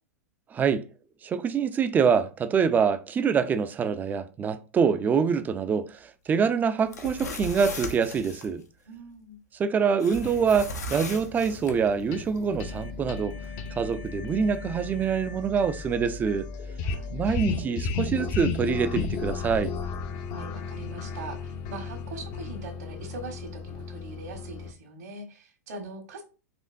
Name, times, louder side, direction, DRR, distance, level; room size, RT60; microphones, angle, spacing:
voice 1, 0.5-0.9 1.2-8.6 9.6-13.4 13.8-16.5 17.1-19.7, right 6 dB, 20° right, 0.4 m, -25 dB
sound 1, 6.8-8.5 10.0-11.8, left 2 dB, 85° left, 0.8 m, -37 dB
voice 2, 8.9-9.4 16.8-17.6 19.8-19.9 20.3-26.2, right 3 dB, 75° right, 1.6 m, -42 dB
sound 2, 10.2-24.7, left 5 dB, 40° left, 0.6 m, -35 dB
4.3 x 3.0 x 2.6 m
hypercardioid pair, 110°, 9 cm